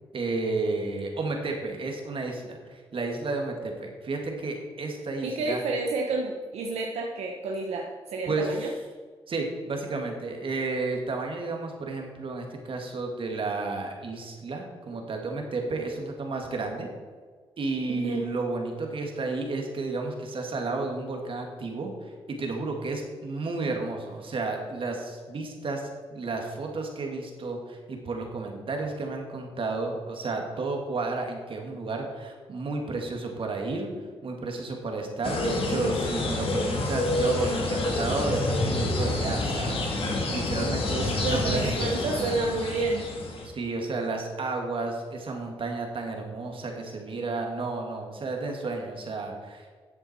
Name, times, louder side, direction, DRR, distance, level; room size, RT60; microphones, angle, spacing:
voice 1, 0.1-5.6 8.3-8.5 9.3-16.9 17.6-33.9 34.2-42.4 43.5-49.7, right 3 dB, 60° right, 2 dB, 2.4 m, -32 dB
voice 2, 5.2-8.7 17.9-18.2 41.1-43.1, right 3 dB, 85° right, 1 dB, 1.0 m, -30 dB
sound 1, 35.2-43.5, left 2 dB, 60° left, 2.4 m, -28 dB
12.0 x 7.9 x 4.6 m, 1.5 s
cardioid pair, 65°, 10 cm